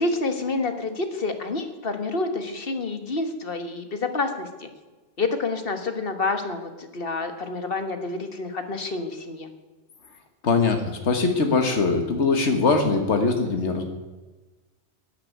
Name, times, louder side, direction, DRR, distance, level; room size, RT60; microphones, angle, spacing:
voice 1, 0.0-4.7 5.2-9.5, left 3 dB, 55° left, 7 dB, 1.8 m, -28 dB
voice 2, 10.4-13.9, left 4 dB, 80° left, 5 dB, 1.8 m, -22 dB
13.0 x 10.0 x 9.3 m, 1.2 s
omnidirectional pair, 1.2 m